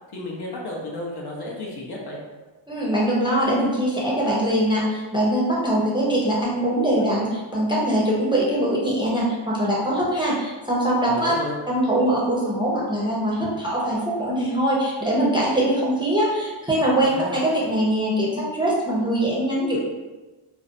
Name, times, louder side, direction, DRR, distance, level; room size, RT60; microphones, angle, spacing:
voice 1, 0.1-2.2 11.0-11.6 17.1-17.3, left 2 dB, 50° left, -3 dB, 0.7 m, -33 dB
voice 2, 2.7-11.3 11.7-19.8, right 1 dB, 10° right, -6 dB, 0.6 m, -22 dB
2.5 x 2.1 x 2.5 m, 1.2 s
cardioid pair, 75°, 49 cm